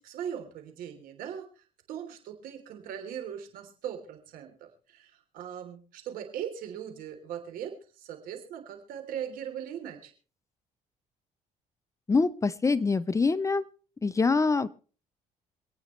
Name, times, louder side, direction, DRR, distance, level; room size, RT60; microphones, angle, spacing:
voice 1, 0.0-10.1, right 9 dB, 85° right, 5 dB, 3.3 m, -40 dB
voice 2, 12.1-13.7 14.0-14.7, left 4 dB, 20° left, 15 dB, 0.7 m, -24 dB
27.0 x 9.1 x 3.2 m, 0.39 s
cardioid pair, 95°, 14 cm